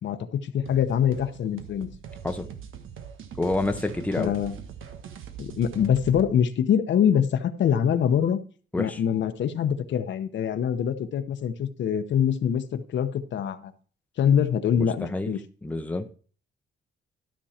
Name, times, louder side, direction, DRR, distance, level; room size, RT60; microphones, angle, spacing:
voice 1, 0.0-1.9 4.2-4.6 5.4-8.4 8.8-13.7 14.2-15.4, left 8 dB, 65° left, 1.0 m, -24 dB
sound 1, 0.6-6.3, right 8 dB, 85° right, 1.4 m, -42 dB
voice 2, 3.4-4.3 8.7-9.0 14.8-15.3 15.6-16.1, left 2 dB, 5° left, 0.8 m, -28 dB
13.0 x 6.3 x 4.3 m
cardioid pair, 135°, 20 cm